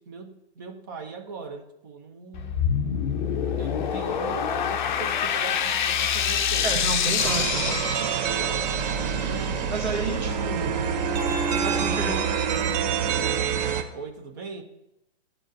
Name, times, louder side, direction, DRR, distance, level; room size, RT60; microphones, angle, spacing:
voice 1, 0.0-2.6 3.6-7.1 8.3-8.7 9.0-9.7 13.9-14.6, right 4 dB, 20° right, 4 dB, 0.4 m, -40 dB
sound 1, 2.3-8.6, left 8 dB, 45° left, 0.5 m, -26 dB
voice 2, 6.6-7.8 9.7-10.8 11.5-12.2, right 4 dB, 70° right, -2 dB, 2.0 m, -31 dB
sound 2, 7.2-13.8, right 7 dB, 40° right, 0.8 m, -26 dB
11.0 x 3.9 x 2.5 m, 0.90 s
figure-of-eight pair, 120°, 34 cm